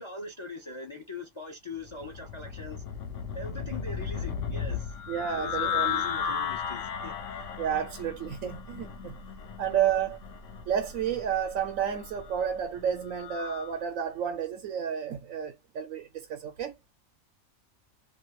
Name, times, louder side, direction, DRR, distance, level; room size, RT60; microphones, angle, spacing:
voice 1, 0.0-2.8 3.3-5.0 5.4-7.5, left 3 dB, 40° left, 0.4 m, -41 dB
sound 1, 1.9-13.7, left 7 dB, 75° left, 0.9 m, -35 dB
voice 2, 5.1-6.0 7.6-9.2 9.6-10.2 10.7-16.7, right 8 dB, 90° right, 1.0 m, -31 dB
2.5 x 2.3 x 2.8 m
omnidirectional pair, 1.3 m